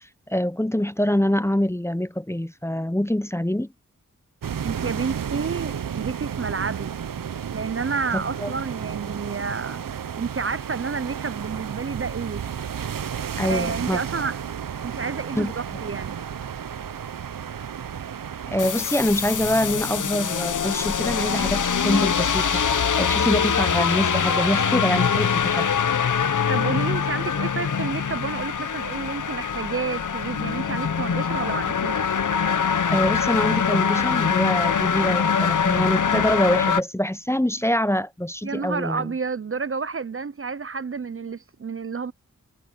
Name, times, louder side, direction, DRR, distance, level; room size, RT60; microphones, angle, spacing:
voice 1, 0.3-3.7 8.1-8.5 13.4-14.0 15.4-15.5 18.5-25.7 32.9-39.1, left 1 dB, 10° left, 0.8 m, -25 dB
sound 1, 4.4-18.7, right 8 dB, 80° right, 0.8 m, -32 dB
voice 2, 4.6-6.9 7.5-12.4 13.4-14.4 14.8-16.2 26.5-32.0 38.4-42.1, right 5 dB, 40° right, 0.6 m, -30 dB
sound 2, 18.6-36.8, left 6 dB, 65° left, 0.9 m, -23 dB
cardioid pair, 50°, 32 cm